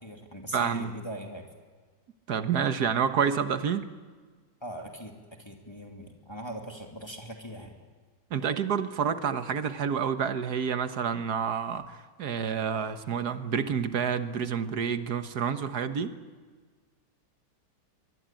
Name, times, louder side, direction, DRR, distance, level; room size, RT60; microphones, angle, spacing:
voice 1, 0.0-1.4 4.6-5.1 5.4-7.7, right 1 dB, 15° left, 2 dB, 2.6 m, -41 dB
voice 2, 0.5-1.0 2.3-3.9 8.3-16.1, right 7 dB, 65° right, 10 dB, 1.7 m, -29 dB
23.5 x 22.5 x 9.1 m, 1.5 s
omnidirectional pair, 1.8 m